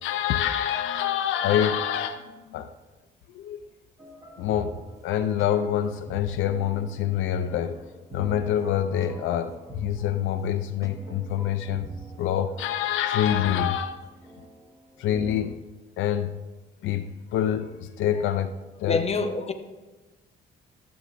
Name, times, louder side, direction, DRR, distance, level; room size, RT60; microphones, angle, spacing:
voice 1, 0.0-2.7 3.3-3.6 4.4-11.9 12.2-14.1 15.0-15.7 16.0-16.4 16.8-18.5 18.8-19.0, left 10 dB, 80° left, 7 dB, 0.4 m, -26 dB
sound 1, 4.0-15.6, right 1 dB, 15° right, 0.9 m, -44 dB
voice 2, 18.9-19.5, left 3 dB, 30° left, 6 dB, 0.7 m, -26 dB
11.5 x 7.0 x 2.4 m, 1.2 s
cardioid pair, 90°, 20 cm